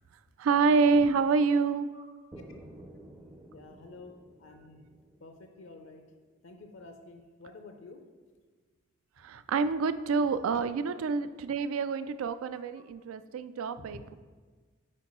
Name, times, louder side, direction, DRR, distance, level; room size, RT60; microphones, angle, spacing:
voice 1, 0.4-1.9 9.2-14.1, right 4 dB, 85° right, 12 dB, 0.3 m, -27 dB
sound 1, 2.3-6.2, right 1 dB, 15° right, 0.4 m, -52 dB
voice 2, 3.5-4.1 4.4-4.9 5.2-6.0 6.4-8.0 12.8-12.9 13.8-14.1, left 3 dB, 70° left, 5 dB, 0.5 m, -49 dB
8.6 x 4.4 x 3.0 m, 1.4 s
head